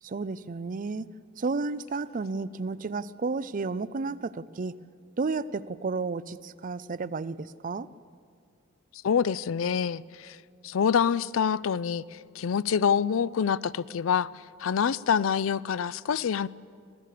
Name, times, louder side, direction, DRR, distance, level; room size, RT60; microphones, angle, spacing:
voice 1, 0.0-1.1 1.4-4.8 5.2-7.9, right 4 dB, 40° right, 0.5 m, -32 dB
voice 2, 9.0-10.4 10.6-14.3 14.6-16.5, left 7 dB, 80° left, 0.4 m, -26 dB
25.5 x 16.5 x 6.7 m
head